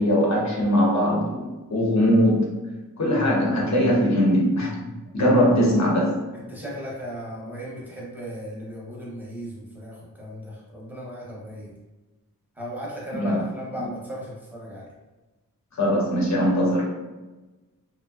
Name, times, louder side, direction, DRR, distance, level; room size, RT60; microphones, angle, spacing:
voice 1, 0.0-2.5 3.0-4.7 5.1-6.2 13.1-13.4 15.7-16.8, equal, 50° left, -3 dB, 0.8 m, -21 dB
voice 2, 6.5-11.7 12.6-14.8, equal, 5° right, -5 dB, 0.7 m, -36 dB
2.6 x 2.1 x 2.3 m, 1.1 s
wide cardioid pair, 110°, 36 cm